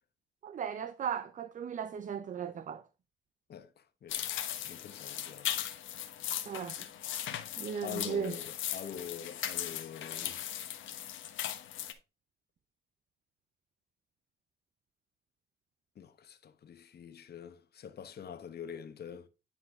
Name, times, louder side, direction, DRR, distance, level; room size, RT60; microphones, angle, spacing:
voice 1, 0.4-2.8 6.5-6.8 7.6-8.4, right 7 dB, 40° right, 0.5 m, -36 dB
voice 2, 3.5-4.3 4.7-5.6 7.8-10.4 16.0-19.3, left 8 dB, 55° left, 1.2 m, -45 dB
sound 1, 4.1-11.9, left 11 dB, 75° left, 1.1 m, -38 dB
9.9 x 4.5 x 3.6 m
cardioid pair, 90°, 20 cm